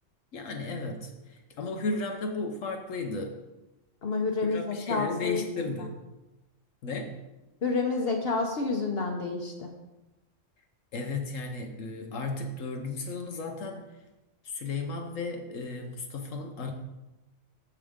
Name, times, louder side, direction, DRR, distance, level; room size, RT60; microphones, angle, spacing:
voice 1, 0.3-3.3 4.4-6.0 6.8-7.1 10.9-13.9 14.4-16.7, left 3 dB, 80° left, 3 dB, 1.3 m, -34 dB
voice 2, 4.0-5.7 7.6-9.7, left 3 dB, 55° left, 2 dB, 1.1 m, -29 dB
14.5 x 4.9 x 3.6 m, 1.0 s
omnidirectional pair, 1.3 m